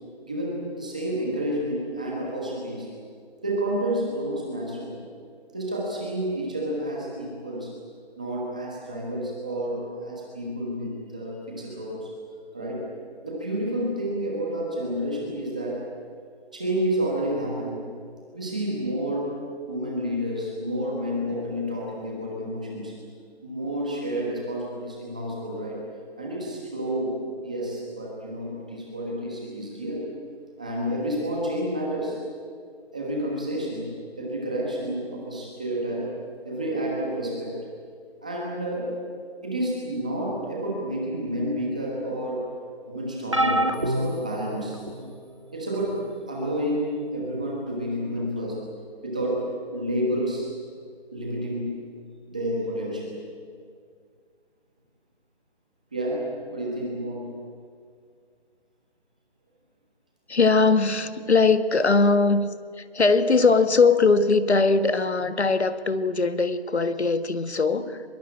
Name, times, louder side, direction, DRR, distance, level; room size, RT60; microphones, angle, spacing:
voice 1, 0.2-2.9 3.4-5.1 5.5-7.7 8.2-12.1 12.5-12.9 13.2-15.8 16.5-17.8 18.3-19.4 19.7-22.9 23.4-25.8 26.2-30.0 30.6-32.2 32.9-33.9 34.2-36.1 36.4-37.6 38.2-39.0 39.4-42.5 42.9-44.8 45.5-48.6 49.0-50.5 51.1-51.9 52.3-53.2 55.9-57.3 67.8-67.9, right 1 dB, 5° right, -3 dB, 1.3 m, -30 dB
sound 1, 43.3-45.1 45.9-46.1 47.4-47.5, right 1 dB, 30° right, 0.7 m, -27 dB
voice 2, 60.3-62.5 62.8-68.0, left 4 dB, 90° left, 12 dB, 1.7 m, -20 dB
23.5 x 21.5 x 8.6 m, 2.2 s
figure-of-eight pair, 180°, 32 cm